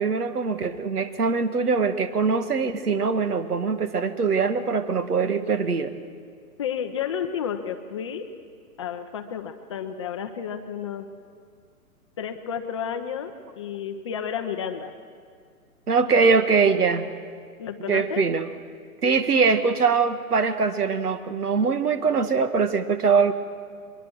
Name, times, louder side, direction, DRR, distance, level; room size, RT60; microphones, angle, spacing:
voice 1, 0.0-5.9 15.9-17.1 17.9-18.5 19.0-23.3, right 5 dB, 80° right, 11 dB, 1.8 m, -22 dB
voice 2, 6.6-8.3 8.8-11.1 12.2-14.9 17.6-18.3, left 8 dB, 20° left, 6 dB, 0.6 m, -31 dB
23.0 x 21.0 x 6.3 m, 2.1 s
hypercardioid pair, 145°, 45 cm